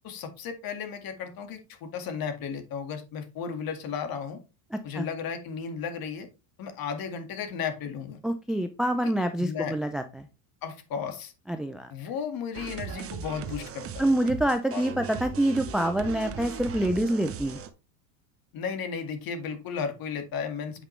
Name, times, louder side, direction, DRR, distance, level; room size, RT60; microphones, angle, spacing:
voice 1, 0.0-4.4 4.8-6.3 6.6-8.2 9.0-9.1 9.4-9.8 10.6-11.3 11.9-14.1 14.7-14.8 18.5-20.8, left 6 dB, 45° left, 7 dB, 2.0 m, -34 dB
voice 2, 4.7-5.1 8.2-10.3 11.5-11.9 14.0-17.6, right 1 dB, ahead, 8 dB, 0.3 m, -26 dB
sound 1, 12.5-17.7, right 7 dB, 30° right, 0.9 m, -38 dB
8.4 x 5.1 x 3.2 m, 0.29 s
supercardioid pair, 105°, 49 cm